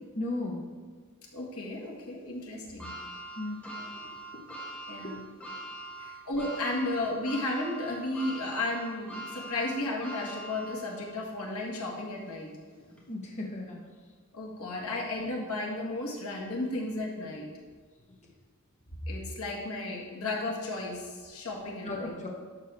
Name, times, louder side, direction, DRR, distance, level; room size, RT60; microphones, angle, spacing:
voice 1, 0.2-0.6 3.4-3.6 13.1-13.8 21.8-22.3, left 2 dB, 35° left, -1 dB, 1.1 m, -35 dB
voice 2, 1.3-2.9 3.8-3.9 4.9-5.3 6.0-12.5 14.3-17.5 19.1-22.2, left 2 dB, 85° left, -1 dB, 1.8 m, -34 dB
sound 1, 2.8-11.2 11.6-11.7 12.9-13.0, right 1 dB, 5° left, 1.6 m, -42 dB
11.5 x 6.5 x 3.5 m, 1.5 s
head